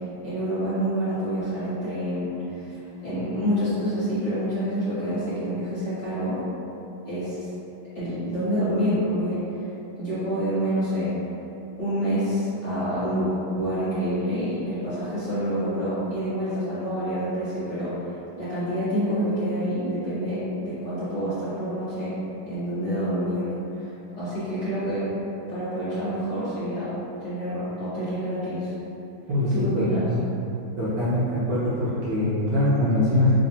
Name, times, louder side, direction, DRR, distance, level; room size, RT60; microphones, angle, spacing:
voice 1, 0.2-6.4 7.0-7.5 7.9-9.6 10.0-11.1 11.8-18.0 18.4-22.1 22.5-25.1 25.5-26.9 27.2-28.7 29.5-30.1, equal, 40° left, -14 dB, 1.5 m, -27 dB
voice 2, 29.3-30.2 30.8-33.3, left 1 dB, 65° right, -9 dB, 1.2 m, -23 dB
3.5 x 3.2 x 2.7 m, 2.9 s
omnidirectional pair, 2.2 m